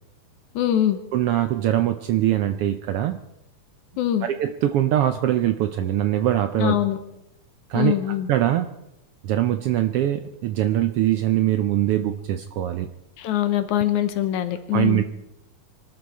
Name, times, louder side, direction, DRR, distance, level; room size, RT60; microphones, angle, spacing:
voice 1, 0.6-1.0 4.0-4.3 6.6-7.0 7.7-8.3 13.2-15.0, left 12 dB, 80° left, 9 dB, 2.4 m, -23 dB
voice 2, 1.1-3.2 4.2-6.8 7.7-7.9 8.3-8.7 9.2-12.9 14.7-15.0, right 12 dB, 85° right, 9 dB, 1.2 m, -22 dB
25.0 x 12.5 x 4.2 m, 0.85 s
omnidirectional pair, 3.4 m